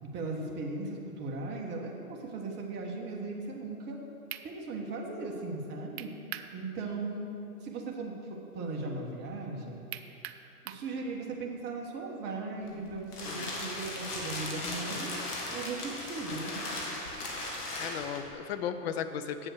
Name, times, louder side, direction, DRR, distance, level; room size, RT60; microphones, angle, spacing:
voice 1, 0.0-4.0 4.4-6.1 6.5-9.8 10.6-15.1 15.5-16.8, right 3 dB, 25° right, -1 dB, 1.3 m, -38 dB
sound 1, 3.9-4.0 4.3-4.5 6.0-6.5 6.9-7.0 9.9-10.9, right 11 dB, 45° right, 0.5 m, -41 dB
sound 2, 12.6-18.3, left 2 dB, 80° left, 2.1 m, -37 dB
voice 2, 13.3-13.6 17.8-19.5, left 8 dB, 45° left, 9 dB, 0.6 m, -36 dB
8.0 x 7.6 x 6.4 m, 2.8 s
hypercardioid pair, 125°, 46 cm